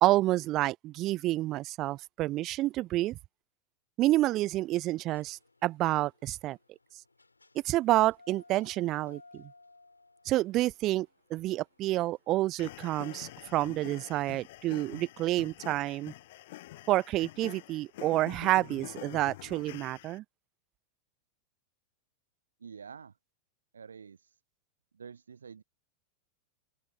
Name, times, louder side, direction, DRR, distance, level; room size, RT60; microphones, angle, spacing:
voice 1, 0.0-3.2 4.0-6.6 7.6-9.5 10.2-16.1 16.9-20.2, right 16 dB, 35° right, 0.5 m, -29 dB
sound 1, 5.1-19.8, left 3 dB, 80° left, 3.5 m, -60 dB
sound 2, 12.6-20.2, left 17 dB, 55° left, 0.9 m, -47 dB
voice 2, 22.6-23.1 23.7-24.4 24.9-25.6, right 6 dB, 70° right, 1.1 m, -48 dB
open air
figure-of-eight pair, 90°, 0 cm